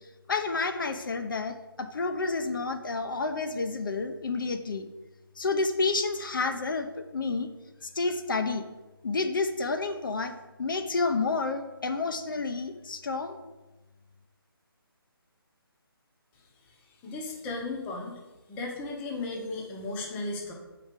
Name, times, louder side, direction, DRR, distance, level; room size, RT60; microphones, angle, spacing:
voice 1, 0.3-4.9 5.4-7.5 7.8-8.6 9.0-13.4, left 3 dB, 60° left, 7 dB, 0.7 m, -30 dB
voice 2, 17.0-18.2 18.5-20.5, left 2 dB, 10° left, 0 dB, 0.8 m, -35 dB
7.1 x 4.9 x 5.1 m, 1.1 s
figure-of-eight pair, 155°, 13 cm